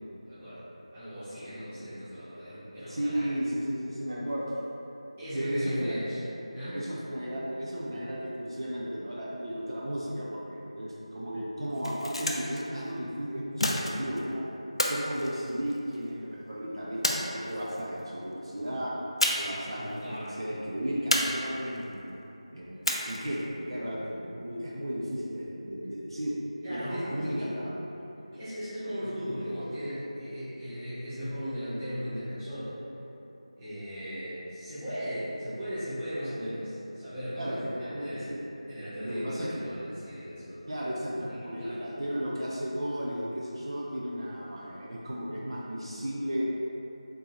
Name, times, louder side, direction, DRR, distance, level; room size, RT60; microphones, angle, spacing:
voice 1, 0.2-0.6 0.9-3.3 5.2-6.2 6.5-6.8 20.0-20.4 20.9-21.0 22.8-22.9 26.6-27.5 28.3-32.7 33.6-38.2 38.7-40.6 41.4-41.7, equal, 10° right, -16 dB, 0.7 m, -37 dB
voice 2, 2.9-4.5 5.3-6.0 6.7-14.5 14.9-19.0 19.4-22.0 22.5-26.4 26.7-28.0 37.4-38.4 39.0-39.6 40.7-46.4, equal, 50° right, -6 dB, 0.4 m, -34 dB
sound 1, 11.6-12.6 13.6-14.2 14.8-16.0 17.0-17.8 19.2-19.7 19.9-20.0 21.1-21.8 22.8-23.4, left 1 dB, 55° left, 0.4 m, -30 dB
3.6 x 2.8 x 2.9 m, 3.0 s
figure-of-eight pair, 170°, 3 cm